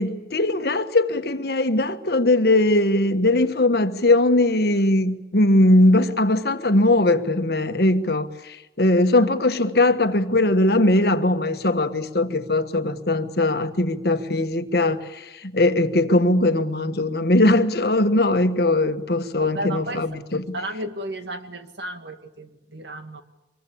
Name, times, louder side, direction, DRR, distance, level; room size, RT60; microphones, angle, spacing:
voice 1, 0.0-20.6, left 2 dB, 60° left, 1.4 m, -20 dB
voice 2, 19.4-20.1 20.5-23.2, right 1 dB, 75° right, 2.2 m, -33 dB
25.0 x 23.0 x 8.6 m
head